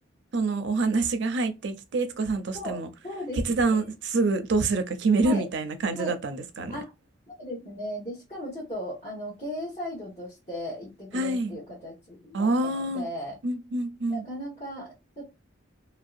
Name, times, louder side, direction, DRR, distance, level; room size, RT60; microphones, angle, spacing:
voice 1, 0.3-2.9 3.4-6.8 11.1-11.6 12.3-13.1 13.4-14.2, right 3 dB, 60° right, 0.4 m, -26 dB
voice 2, 2.5-3.6 5.2-5.4 5.9-6.2 6.7-6.9 7.3-13.3 14.1-15.3, equal, 35° left, 1.1 m, -37 dB
2.6 x 2.1 x 2.4 m
head